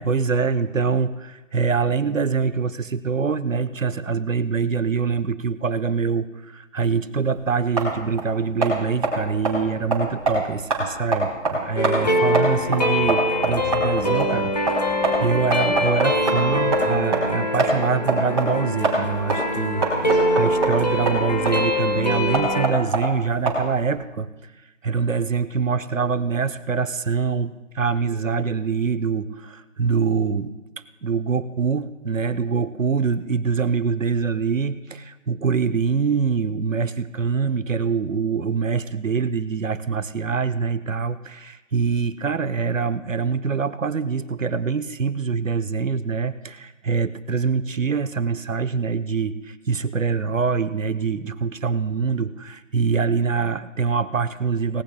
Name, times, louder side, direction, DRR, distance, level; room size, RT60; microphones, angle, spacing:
voice 1, 0.0-19.9 20.3-24.3 24.8-30.5 31.0-54.8, right 5 dB, 75° right, 13 dB, 0.8 m, -24 dB
sound 1, 7.1-23.9, right 3 dB, 25° right, 3.7 m, -26 dB
sound 2, 11.8-22.7, left 1 dB, 30° left, 0.9 m, -24 dB
19.0 x 18.0 x 2.3 m, 1.1 s
figure-of-eight pair, 170°, 39 cm